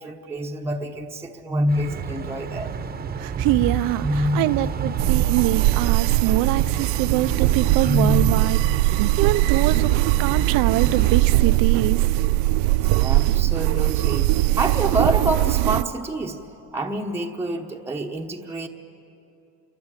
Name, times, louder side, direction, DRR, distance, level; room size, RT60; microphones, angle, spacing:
voice 1, 0.0-2.7 3.1-3.2 4.0-4.7 7.8-8.4 13.0-16.4 16.7-18.7, right 1 dB, 5° right, 0 dB, 1.0 m, -26 dB
sound 1, 1.7-11.2, right 6 dB, 25° right, 1.1 m, -30 dB
voice 2, 3.2-9.9 10.2-12.1, right 15 dB, 65° right, 15 dB, 0.8 m, -24 dB
sound 2, 5.0-15.8, right 17 dB, 90° right, 0.5 m, -20 dB
27.5 x 23.5 x 9.1 m, 2.9 s
cardioid pair, 160°, 35 cm